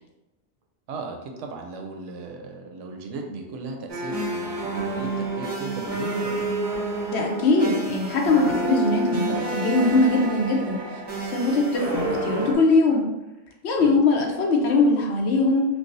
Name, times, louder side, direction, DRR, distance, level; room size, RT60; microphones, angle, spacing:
voice 1, 0.9-6.6 13.8-14.0, right 3 dB, 80° right, 3 dB, 0.9 m, -36 dB
sound 1, 3.9-12.5, right 2 dB, 30° right, 0.5 m, -29 dB
voice 2, 7.1-10.8 11.2-13.1 13.6-15.7, left 3 dB, 70° left, 1 dB, 0.9 m, -21 dB
4.6 x 2.0 x 2.6 m, 1.0 s
omnidirectional pair, 1.2 m